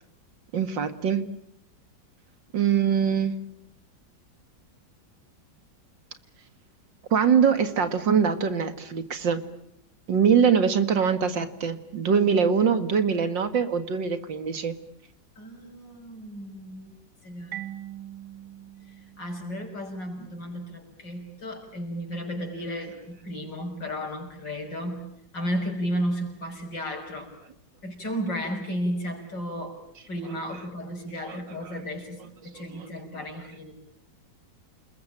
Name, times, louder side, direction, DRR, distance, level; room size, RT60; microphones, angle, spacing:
voice 1, 0.5-1.2 2.5-3.3 7.1-9.4 10.1-14.8 31.3-31.4 31.6-31.8, right 7 dB, 85° right, 10 dB, 2.6 m, -23 dB
voice 2, 15.4-16.9 17.2-17.6 19.2-25.0 25.3-27.3 27.8-29.8 30.1-33.7, equal, 75° left, 2 dB, 6.9 m, -33 dB
Marimba xylophone, 17.5-20.2, right 12 dB, 70° right, 2.2 m, -42 dB
29.0 x 21.0 x 8.9 m, 0.71 s
omnidirectional pair, 1.9 m